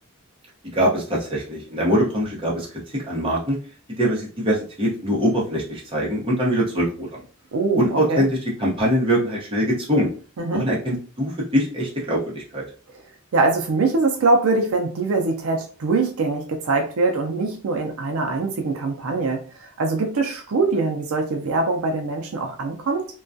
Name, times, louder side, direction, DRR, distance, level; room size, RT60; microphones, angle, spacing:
voice 1, 0.7-2.7 2.9-3.6 4.0-7.2 7.7-10.1 10.5-12.6, equal, 25° right, -4 dB, 0.8 m, -23 dB
voice 2, 7.5-8.2 10.4-10.7 13.3-19.4 19.8-23.1, right 3 dB, 80° right, 3 dB, 0.4 m, -23 dB
2.2 x 2.2 x 2.5 m, 0.39 s
head